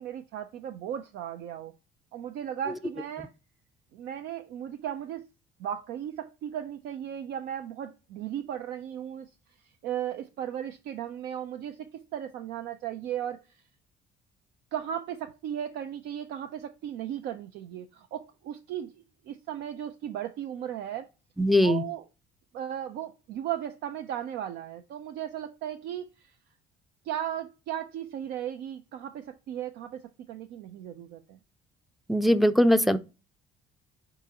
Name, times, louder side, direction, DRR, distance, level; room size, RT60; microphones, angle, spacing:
voice 1, 0.0-1.7 2.1-3.3 3.9-5.3 5.6-9.3 9.8-13.6 14.7-18.9 19.3-21.1 21.6-22.0 22.5-26.3 27.0-30.0 30.3-31.4, right 10 dB, 80° right, 0.5 m, -36 dB
voice 2, 21.4-21.8 32.1-33.0, equal, ahead, 0.4 m, -21 dB
4.8 x 3.7 x 2.8 m
cardioid pair, 110°, 17 cm